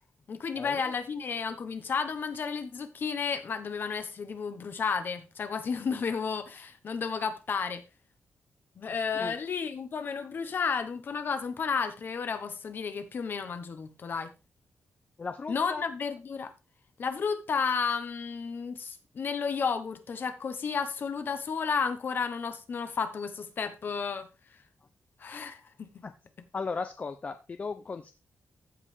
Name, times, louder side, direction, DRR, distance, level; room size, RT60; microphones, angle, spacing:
voice 1, 0.3-7.8 8.8-14.3 15.5-16.5 17.0-24.3 25.2-25.9, left 5 dB, 45° left, 1.2 m, -32 dB
voice 2, 15.2-15.8 26.0-26.1 26.5-28.1, left 4 dB, 30° left, 0.5 m, -36 dB
15.0 x 5.4 x 3.5 m
wide cardioid pair, 175°, 5 cm